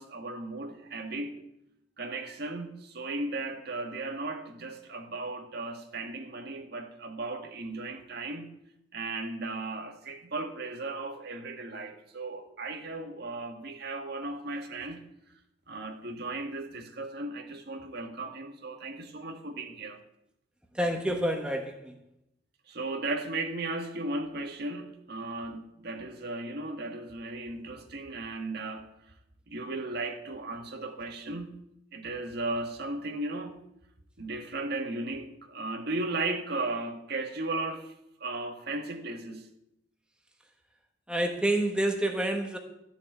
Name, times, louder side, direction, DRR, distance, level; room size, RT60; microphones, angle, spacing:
voice 1, 0.0-1.3 2.0-8.5 8.9-15.0 15.7-20.0 22.7-28.9 29.5-31.5 31.9-33.6 34.2-37.9 38.2-39.5, right 2 dB, 55° right, 4 dB, 1.9 m, -36 dB
voice 2, 20.7-22.0 41.1-42.6, right 1 dB, 5° right, 3 dB, 1.3 m, -28 dB
14.5 x 7.1 x 9.3 m, 0.84 s
head